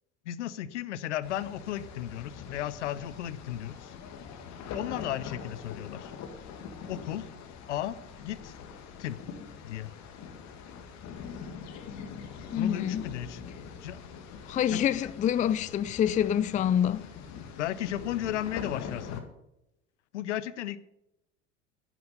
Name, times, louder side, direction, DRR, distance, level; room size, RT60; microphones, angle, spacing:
voice 1, 0.2-3.9 4.7-6.1 6.9-7.3 7.7-8.5 9.0-9.2 9.6-9.9 12.6-13.4 13.8-14.1 14.7-15.1 17.6-19.2 20.1-20.8, left 12 dB, 70° left, 0.9 m, -35 dB
sound 1, 1.2-19.2, left 6 dB, 50° left, 2.1 m, -43 dB
voice 2, 12.5-13.0 14.5-17.1, left 9 dB, 20° left, 0.5 m, -26 dB
11.0 x 9.4 x 6.8 m
figure-of-eight pair, 70°, 37 cm